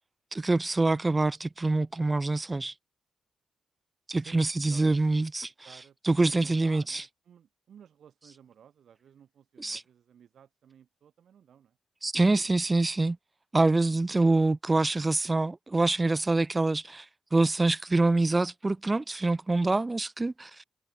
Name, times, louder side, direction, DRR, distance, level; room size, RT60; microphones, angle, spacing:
voice 1, 0.3-2.7 4.1-5.5 6.1-7.0 9.6-9.8 12.0-13.2 13.5-17.0 17.3-20.6, right 2 dB, 25° right, 0.7 m, -25 dB
voice 2, 4.2-5.2 5.6-11.8, right 8 dB, 65° right, 7.7 m, -55 dB
hypercardioid pair, 45°, 0 cm